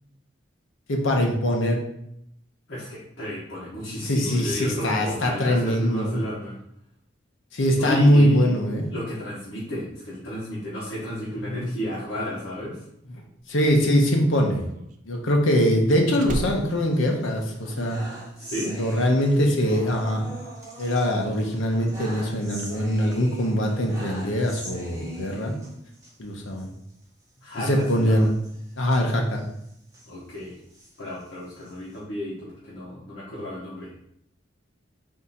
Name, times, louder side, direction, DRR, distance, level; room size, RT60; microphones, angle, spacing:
voice 1, 0.9-1.8 3.9-6.2 7.5-8.9 11.5-11.7 13.5-14.7 15.1-18.0 18.7-20.3 20.8-25.5 26.2-26.7 27.6-28.3 28.8-29.4, equal, 85° left, 1 dB, 0.8 m, -22 dB
voice 2, 2.7-6.6 7.8-8.5 8.9-12.8 18.4-18.7 27.4-28.3 30.1-30.6 31.0-33.9, equal, 65° left, -8 dB, 1.2 m, -33 dB
Slam, 13.3-18.0 18.3-18.7, right 1 dB, 40° right, 0.3 m, -37 dB
sound 1, 16.0-17.0 17.3-26.1 26.5-26.6 26.9-27.0 27.6-30.1 30.6-32.0, right 1 dB, 15° right, 1.0 m, -42 dB
3.7 x 2.8 x 4.2 m, 0.74 s
head